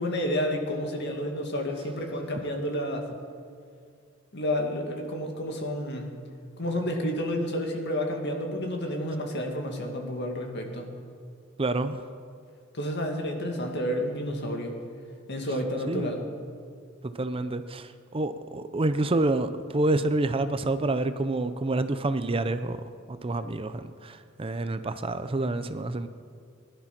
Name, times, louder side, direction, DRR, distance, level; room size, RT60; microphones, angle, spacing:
voice 1, 0.0-3.1 4.3-6.2 6.6-10.9 12.7-14.8 15.3-16.2, equal, 55° left, 3 dB, 2.1 m, -30 dB
voice 2, 11.6-12.0 15.9-16.1 17.0-26.1, right 2 dB, 25° right, 11 dB, 0.5 m, -28 dB
20.0 x 11.5 x 6.0 m, 2.2 s
head